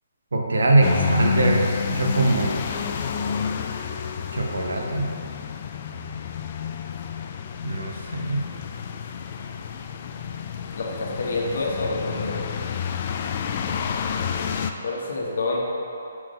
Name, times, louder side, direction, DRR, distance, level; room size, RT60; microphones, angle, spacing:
voice 1, 0.3-2.6 4.3-5.1 7.6-8.4, right 2 dB, 90° right, 0 dB, 1.0 m, -22 dB
sound 1, 0.8-14.7, left 7 dB, 40° left, 0.3 m, -29 dB
voice 2, 10.7-12.4 14.8-15.6, left 2 dB, 70° left, -2 dB, 1.2 m, -27 dB
6.0 x 3.9 x 5.0 m, 2.7 s
hypercardioid pair, 160°, 0 cm